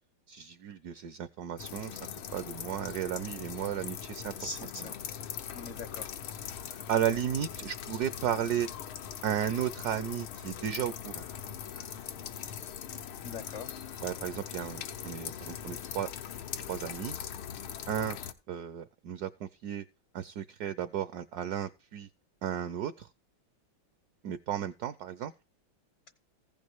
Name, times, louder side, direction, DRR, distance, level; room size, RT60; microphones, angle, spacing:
voice 1, 0.3-2.0 2.3-4.3 6.9-8.7 9.2-11.2 14.0-16.1 16.7-17.2 17.9-18.2 18.5-19.8 20.1-22.1 22.4-23.1 24.2-25.3, right 10 dB, 65° right, 13 dB, 1.0 m, -34 dB
sound 1, 1.6-18.3, left 9 dB, 90° left, 1.8 m, -41 dB
voice 2, 4.3-5.0 5.5-6.1 13.2-13.7, left 3 dB, 60° left, 11 dB, 0.8 m, -42 dB
15.0 x 5.2 x 4.5 m, 0.28 s
omnidirectional pair, 2.2 m